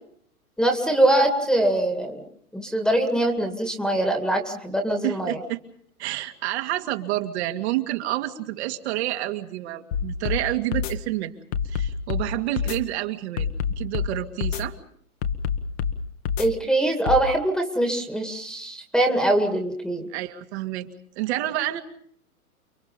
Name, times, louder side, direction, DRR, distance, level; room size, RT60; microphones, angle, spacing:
voice 1, 0.6-2.2 2.5-5.4 16.4-20.1, right 1 dB, ahead, 5 dB, 2.3 m, -23 dB
voice 2, 5.0-5.6 6.0-11.3 11.6-13.5 13.8-14.8 20.1-20.9 21.2-21.8, right 15 dB, 45° right, 6 dB, 2.4 m, -28 dB
sound 1, 9.9-10.4 10.7-10.9 11.5-12.3 12.6-12.8 13.4-14.1 14.4-14.6 15.2-15.9 16.2-16.5 17.1-17.2, left 7 dB, 45° left, 1.9 m, -26 dB
30.0 x 22.5 x 5.5 m, 0.66 s
hypercardioid pair, 135°, 44 cm